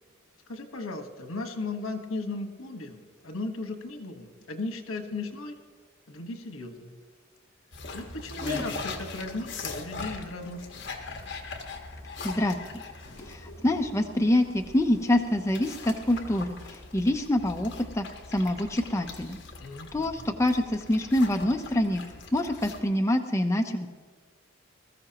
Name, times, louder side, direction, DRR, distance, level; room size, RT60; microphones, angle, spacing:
voice 1, 0.5-5.5 6.1-7.0 7.9-10.9 19.6-20.1, left 2 dB, 80° left, 6 dB, 1.4 m, -36 dB
sound 1, 7.7-22.8, left 4 dB, 55° left, 1.4 m, -41 dB
sound 2, 7.8-16.9, left 2 dB, 10° right, 3.9 m, -45 dB
voice 2, 12.2-12.8 13.3-19.4 19.9-22.0 22.3-23.9, left 1 dB, 15° left, 3 dB, 0.6 m, -26 dB
20.5 x 14.0 x 2.9 m, 1.5 s
head